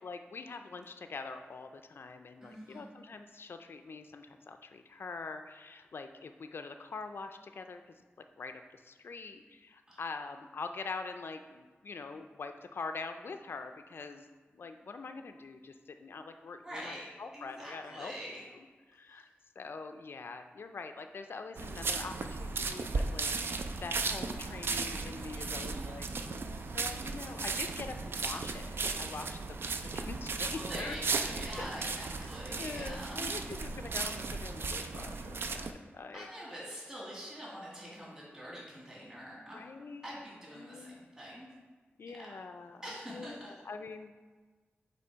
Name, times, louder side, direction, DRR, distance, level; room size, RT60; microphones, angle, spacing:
voice 1, 0.0-7.8 8.2-18.1 18.5-19.3 19.6-29.6 29.9-31.0 31.6-31.7 32.6-35.7 35.9-36.3 39.5-40.1 40.5-41.0 42.0-44.1, left 4 dB, 65° left, 7 dB, 0.4 m, -44 dB
voice 2, 2.4-2.9 9.9-10.0 16.6-17.0 17.3-18.5 25.3-25.9 30.5-33.3 36.1-39.7 40.0-41.5 42.0-42.3 42.8-43.6, equal, 15° right, -6 dB, 1.8 m, -45 dB
sound 1, 21.6-35.7, right 4 dB, 65° right, 0.4 m, -36 dB
7.7 x 3.1 x 4.5 m, 1.4 s
wide cardioid pair, 110°, 4 cm